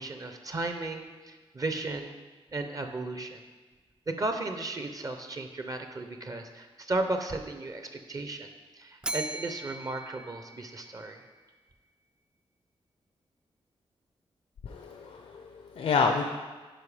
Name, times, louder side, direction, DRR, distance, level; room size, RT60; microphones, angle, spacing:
voice 1, 0.0-2.2 2.5-3.4 4.1-11.2, right 2 dB, 35° right, 6 dB, 0.7 m, -35 dB
Bell, 9.0-11.2, right 1 dB, 10° right, 0.3 m, -39 dB
voice 2, 14.6-16.2, left 5 dB, 85° left, 3 dB, 0.6 m, -28 dB
10.0 x 5.3 x 4.9 m, 1.3 s
wide cardioid pair, 155°, 10 cm